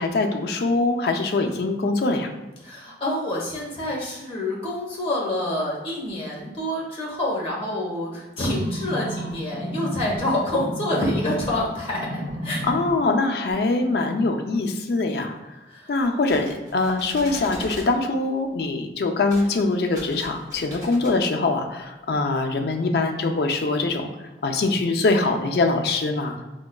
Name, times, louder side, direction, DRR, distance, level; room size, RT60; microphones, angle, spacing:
voice 1, 0.0-2.3 12.6-15.3 15.9-24.1 24.4-26.4, left 3 dB, 60° left, 4 dB, 0.4 m, -23 dB
voice 2, 2.6-12.6 15.7-15.9, left 1 dB, 30° left, -5 dB, 1.0 m, -27 dB
sound 1, 8.5-11.6 11.9-12.9 13.5-13.6, equal, 50° right, 0.7 m, -31 dB
sound 2, 16.0-17.9 19.3-19.5 19.8-21.2, equal, 20° right, 1.0 m, -40 dB
4.8 x 2.2 x 2.2 m, 1.0 s
head